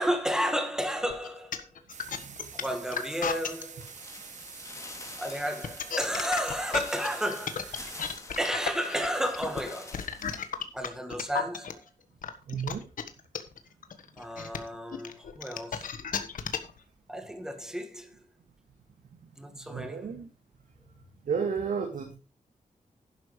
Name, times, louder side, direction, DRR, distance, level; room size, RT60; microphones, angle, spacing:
voice 1, 0.0-1.6 2.5-3.9 5.2-8.0 8.4-10.0 10.7-11.8 14.2-15.9 17.1-18.1 19.4-20.1, equal, 5° right, 1.9 m, -32 dB
sound 1, 1.1-3.6 5.5-11.7 12.2-16.8, left 7 dB, 90° left, 1.4 m, -33 dB
sound 2, 1.9-8.2, right 6 dB, 65° right, 1.3 m, -46 dB
voice 2, 2.2-2.5 12.5-12.8 19.7-20.3 21.3-22.1, right 6 dB, 80° right, 2.1 m, -32 dB
sound 3, 3.8-10.5 10.8-10.9, left 2 dB, 20° left, 2.9 m, -46 dB
11.5 x 10.5 x 3.3 m
wide cardioid pair, 160°, 13 cm